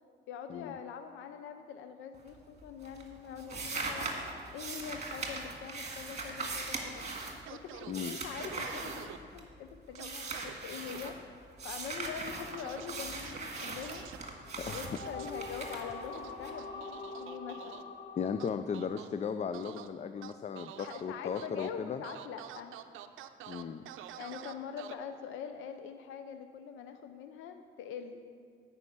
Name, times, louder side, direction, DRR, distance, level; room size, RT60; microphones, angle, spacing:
voice 1, 0.3-4.1 4.5-7.1 7.5-11.2 11.6-14.1 14.3-17.8 20.8-22.7 24.2-28.3, left 7 dB, 90° left, 8 dB, 0.5 m, -44 dB
sound 1, 2.1-2.6 2.8-9.6 9.9-11.1 11.6-16.5, right 3 dB, 35° right, 1.8 m, -40 dB
sound 2, 7.5-7.9 8.4-9.2 10.0-10.5 10.9-11.1 12.6-12.9 13.3-14.2 14.7-15.3 16.1-17.8 18.4-19.1 19.5-19.9 20.2-21.0 21.3-21.7 22.0-24.9, right 12 dB, 85° right, 0.5 m, -47 dB
sound 3, 14.5-19.9, left 3 dB, 60° left, 1.2 m, -45 dB
voice 2, 18.2-22.0 23.5-23.8, left 6 dB, 35° left, 10 dB, 0.4 m, -36 dB
9.8 x 5.5 x 8.1 m, 2.2 s
cardioid pair, 90°, 20 cm